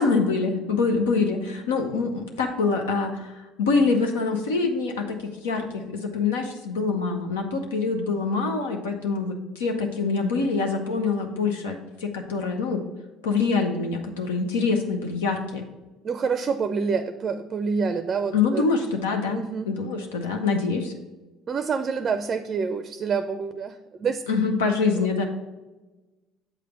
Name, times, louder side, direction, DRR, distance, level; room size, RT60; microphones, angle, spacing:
voice 1, 0.0-12.8 13.2-15.7 18.3-19.4 19.6-20.9 24.3-25.2, left 4 dB, 90° left, 2 dB, 0.7 m, -25 dB
voice 2, 16.0-18.7 19.3-19.7 21.5-24.2, right 5 dB, 40° right, 11 dB, 0.4 m, -27 dB
7.4 x 3.3 x 5.7 m, 1.1 s
hypercardioid pair, 70°, 0 cm